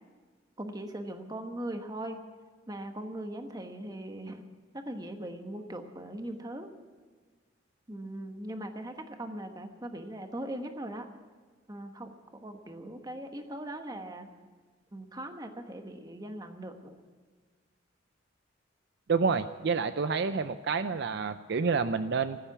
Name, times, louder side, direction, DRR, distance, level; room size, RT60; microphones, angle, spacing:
voice 1, 0.6-2.2 2.7-4.4 4.9-6.7 7.9-11.1 11.7-14.3 14.9-17.0, right 1 dB, 20° right, 6 dB, 1.1 m, -40 dB
voice 2, 19.1-22.4, right 5 dB, 60° right, 11 dB, 0.5 m, -28 dB
14.5 x 8.9 x 9.3 m, 1.5 s
head